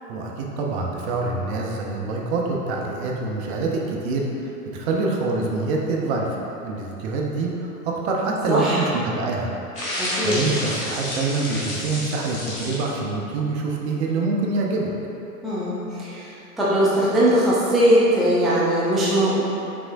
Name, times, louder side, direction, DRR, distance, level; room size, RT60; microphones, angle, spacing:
voice 1, 0.1-6.4 6.6-9.5 10.2-14.9, right 3 dB, 45° right, -1 dB, 0.8 m, -25 dB
voice 2, 8.5-8.8 10.0-10.4 15.4-19.4, equal, ahead, -9 dB, 0.4 m, -20 dB
sound 1, 9.8-13.0, left 1 dB, 80° left, 1.5 m, -30 dB
5.9 x 3.5 x 2.5 m, 2.9 s
figure-of-eight pair, 95°, 45 cm